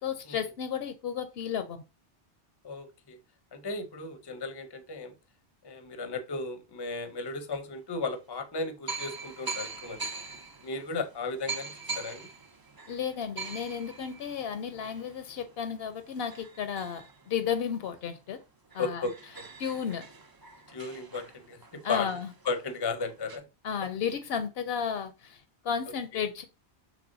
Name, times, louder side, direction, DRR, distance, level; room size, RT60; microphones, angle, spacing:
voice 1, 0.0-1.8 12.9-18.4 18.7-19.0 19.6-20.1 21.8-22.3 23.6-26.4, left 7 dB, 70° left, 0.8 m, -33 dB
voice 2, 2.6-3.2 3.5-5.1 5.6-10.1 10.6-12.3 18.8-19.1 20.7-22.1 22.4-23.4 26.1-26.2, left 3 dB, 30° left, 0.5 m, -35 dB
sound 1, 7.2-7.3 8.1-8.2 8.9-18.0 18.4-18.5 18.7-23.4, right 4 dB, 40° right, 0.3 m, -43 dB
6.0 x 3.3 x 2.6 m
omnidirectional pair, 1.1 m